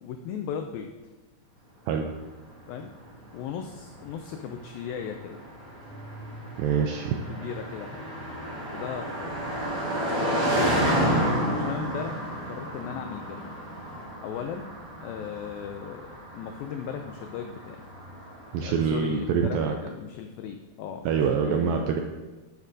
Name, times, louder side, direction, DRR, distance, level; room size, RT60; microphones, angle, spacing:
voice 1, 0.0-0.9 2.7-2.9 3.3-5.4 7.3-8.1 8.7-9.4 10.4-11.0 11.4-13.6 14.2-14.7 15.0-17.8 18.6-21.8, left 8 dB, 85° left, 5 dB, 2.0 m, -37 dB
Car passing by, 2.5-18.9, equal, 40° right, 1.3 m, -31 dB
voice 2, 6.6-7.2 18.5-19.7 21.1-22.0, right 6 dB, 85° right, 3 dB, 2.1 m, -25 dB
12.0 x 7.3 x 2.7 m, 1.2 s
omnidirectional pair, 4.7 m